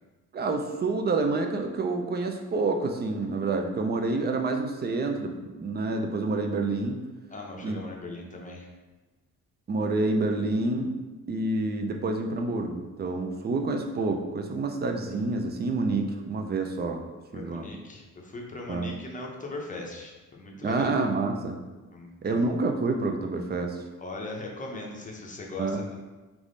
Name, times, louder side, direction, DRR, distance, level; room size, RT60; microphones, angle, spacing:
voice 1, 0.3-7.0 7.6-7.8 9.7-10.9 11.3-17.0 17.3-17.7 18.7-18.9 20.6-21.6 22.2-23.8 25.6-25.8, right 3 dB, 30° right, 4 dB, 0.4 m, -28 dB
voice 2, 7.3-8.7 17.3-20.9 21.9-22.4 24.0-26.0, left 2 dB, 25° left, -1 dB, 0.6 m, -39 dB
3.5 x 3.1 x 3.8 m, 1.2 s
wide cardioid pair, 150°, 32 cm